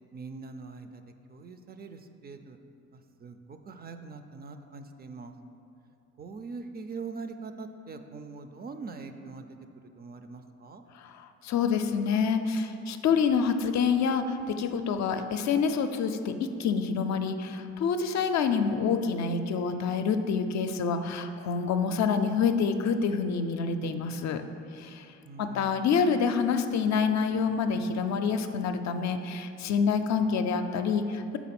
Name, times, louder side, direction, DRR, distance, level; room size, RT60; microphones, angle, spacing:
voice 1, 0.1-1.0 1.3-2.6 2.9-5.3 6.2-9.4 10.0-10.8 25.2-25.9, right 4 dB, 35° right, 8 dB, 0.4 m, -42 dB
voice 2, 10.9-24.4 24.8-25.1 25.4-31.4, left 5 dB, 65° left, 7 dB, 0.5 m, -27 dB
6.0 x 3.7 x 5.8 m, 2.5 s
cardioid pair, 90°, 30 cm